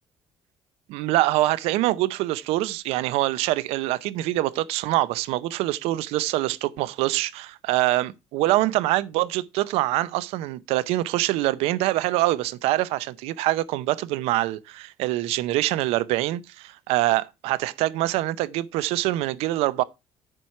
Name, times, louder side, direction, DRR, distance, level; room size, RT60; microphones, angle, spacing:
voice 1, 0.9-19.8, right 16 dB, 90° right, 0.6 m, -24 dB
9.9 x 4.6 x 5.7 m
cardioid pair, 105°, 10 cm